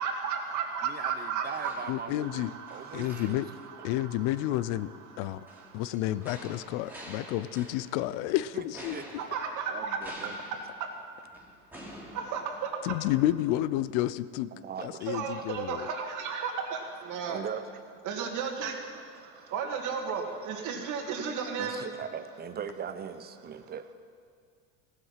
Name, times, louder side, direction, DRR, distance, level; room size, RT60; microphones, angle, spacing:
voice 1, 0.0-1.7 2.2-5.9 9.2-10.0 10.4-10.9 12.1-12.7 15.1-17.4 18.0-18.8 19.2-21.9, right 6 dB, 50° right, 3 dB, 2.0 m, -35 dB
voice 2, 0.8-3.4 8.5-8.6 8.9-9.1 9.7-10.4 14.5-15.2 17.2-17.8 19.2-19.4 21.6-23.9, right 7 dB, 25° right, 11 dB, 0.7 m, -40 dB
sound 1, 1.0-2.4 2.7-3.6 5.5-8.1 8.7-13.0 13.5-13.6, equal, 5° right, 3.0 m, -48 dB
voice 3, 1.9-2.5 2.9-3.5 3.8-4.9 5.2-5.5 5.7-9.0 12.8-14.5 14.8-15.9, left 14 dB, 65° left, 16 dB, 0.6 m, -30 dB
16.0 x 7.7 x 5.8 m, 2.2 s
supercardioid pair, 100°, 39 cm